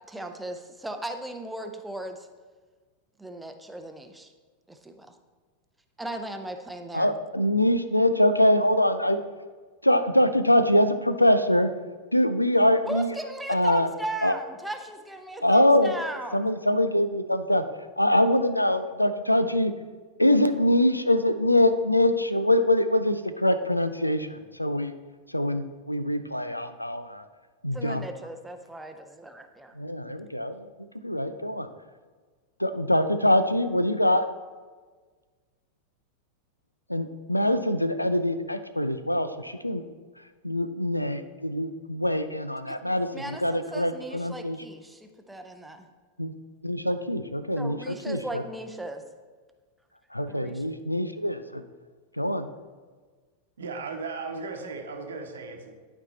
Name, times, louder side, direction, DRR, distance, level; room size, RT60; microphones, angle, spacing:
voice 1, 0.1-2.3 3.2-4.3 4.7-5.2 6.0-7.1 12.8-16.5 27.7-29.7 42.7-45.9 47.6-49.0 50.3-50.6, right 1 dB, 5° right, 5 dB, 0.6 m, -37 dB
voice 2, 6.9-9.2 9.8-11.7 12.1-13.1 13.5-13.9 14.2-14.3 15.4-15.9 16.3-17.6 18.0-19.7 20.2-24.9 25.3-27.2 27.6-28.1 29.8-30.7 31.0-31.7 32.6-34.2 36.9-39.8 40.4-44.6 46.2-46.3 46.6-48.4 50.1-51.6 52.2-52.5, left 1 dB, 85° left, 11 dB, 0.4 m, -24 dB
voice 3, 53.6-55.8, right 4 dB, 65° right, 3 dB, 1.0 m, -36 dB
11.5 x 4.4 x 4.0 m, 1.5 s
figure-of-eight pair, 90°, 0 cm